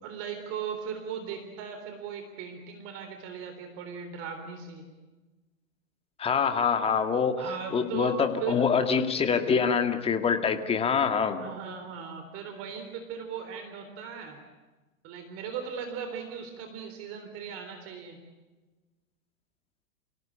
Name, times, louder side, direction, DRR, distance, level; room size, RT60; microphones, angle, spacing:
voice 1, 0.0-4.9 7.4-8.6 11.4-14.4 15.0-18.2, right 7 dB, 35° right, 6 dB, 3.7 m, -38 dB
voice 2, 6.2-7.4 7.7-11.4, left 6 dB, 15° left, 7 dB, 2.0 m, -25 dB
28.5 x 18.0 x 8.8 m, 1.2 s
hypercardioid pair, 140°, 41 cm